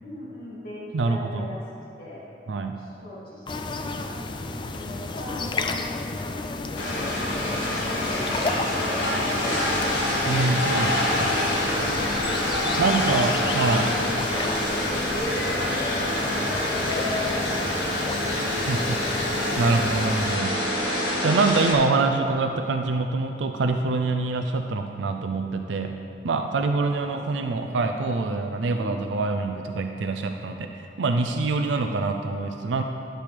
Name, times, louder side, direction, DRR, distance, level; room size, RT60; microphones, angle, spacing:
voice 1, 0.0-1.6 2.0-2.2 2.8-6.3 6.7-7.2 8.1-9.9 11.2-18.1 18.4-18.5 24.1-24.2 26.9-27.7 28.7-29.0, left 1 dB, 55° left, -8 dB, 2.2 m, -41 dB
voice 2, 0.9-1.5 2.5-2.8 10.3-11.0 12.8-13.9 18.7-18.8 19.6-20.6 21.2-25.9 26.2-32.8, right 3 dB, 80° right, 5 dB, 0.4 m, -25 dB
sound 1, 3.5-20.4, left 3 dB, 25° left, 0.3 m, -32 dB
sound 2, 6.8-21.7, left 1 dB, 90° left, 1.8 m, -26 dB
11.5 x 6.8 x 3.3 m, 2.6 s
head